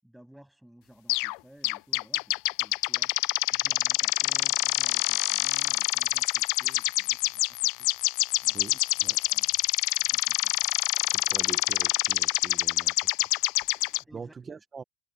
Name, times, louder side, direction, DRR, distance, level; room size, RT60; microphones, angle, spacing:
voice 1, 0.0-7.9 8.4-8.8 9.2-9.5 10.1-10.5 14.1-14.6, right 1 dB, ahead, 7.3 m, -55 dB
sound 1, 1.1-1.4 1.6-14.0, left 26 dB, 75° left, 0.3 m, -26 dB
voice 2, 8.5-9.2 11.1-13.3 13.6-14.8, right 5 dB, 25° right, 1.0 m, -44 dB
supercardioid pair, 130°, 0 cm